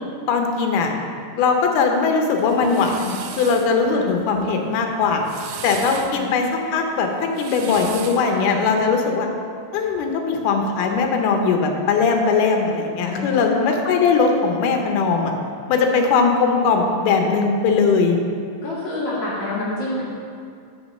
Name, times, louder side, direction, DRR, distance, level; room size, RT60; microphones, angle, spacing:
voice 1, 0.3-0.9 1.4-5.2 5.6-9.3 9.7-15.3 15.7-18.2, left 4 dB, 85° left, 3 dB, 2.3 m, -20 dB
sound 1, 2.4-3.7 5.1-6.1 7.2-8.3, right 7 dB, 85° right, 2.0 m, -35 dB
voice 2, 6.1-6.4 8.3-8.5 13.0-13.7 18.6-20.0, left 2 dB, 55° left, -7 dB, 2.6 m, -28 dB
6.0 x 5.8 x 6.5 m, 2.4 s
omnidirectional pair, 3.6 m